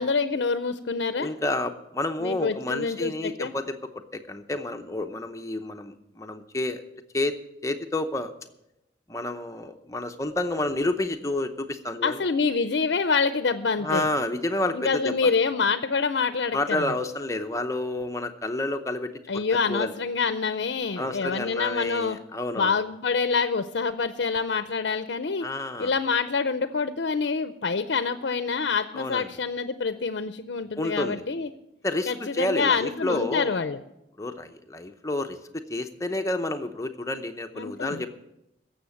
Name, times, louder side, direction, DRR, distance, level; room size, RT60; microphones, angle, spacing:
voice 1, 0.0-1.3 2.2-3.5 12.0-14.1 14.7-17.0 19.3-22.2 22.6-25.5 25.8-31.5 32.1-33.8 37.6-38.0, left 4 dB, 80° left, 10 dB, 0.6 m, -26 dB
voice 2, 1.2-3.7 4.1-6.8 7.1-7.3 7.6-8.3 9.1-12.2 13.8-15.3 16.5-19.4 19.7-19.9 21.0-22.8 25.4-25.9 28.9-29.3 30.8-31.2 31.8-33.5 34.2-38.1, left 2 dB, 15° left, 6 dB, 0.7 m, -29 dB
16.5 x 7.2 x 7.1 m, 0.87 s
head